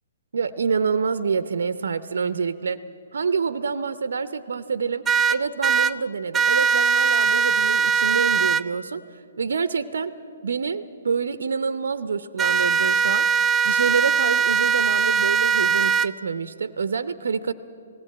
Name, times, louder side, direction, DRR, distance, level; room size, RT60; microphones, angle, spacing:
voice 1, 0.3-2.8 3.1-9.0 9.4-10.1 10.4-13.3 13.6-17.5, right 5 dB, 70° right, 14 dB, 0.7 m, -27 dB
sound 1, 5.1-5.9 6.3-8.6 12.4-16.1, right 6 dB, 15° right, 0.4 m, -20 dB
19.5 x 16.5 x 8.5 m, 2.4 s
figure-of-eight pair, 130°, 0 cm